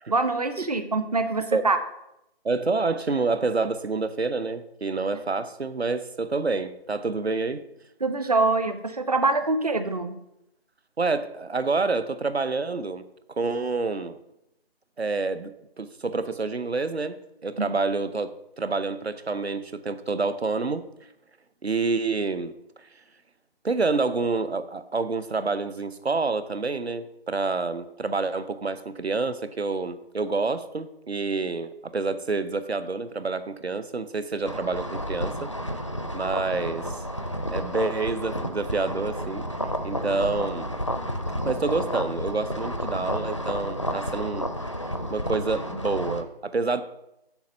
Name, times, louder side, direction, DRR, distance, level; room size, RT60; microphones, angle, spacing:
voice 1, 0.1-1.8 8.0-10.1 17.6-17.7, right 3 dB, 40° right, 9 dB, 0.7 m, -24 dB
voice 2, 2.4-7.6 11.0-14.2 15.0-17.2 17.4-20.9 21.6-22.5 22.8-22.9 23.6-35.5 36.1-37.0 37.5-39.5 39.8-40.7 41.4-44.5 45.1-46.8, right 3 dB, 85° right, 13 dB, 0.8 m, -28 dB
sound 1, 34.5-46.2, equal, 30° left, 0.4 m, -31 dB
7.1 x 4.4 x 6.8 m, 0.84 s
figure-of-eight pair, 155°, 31 cm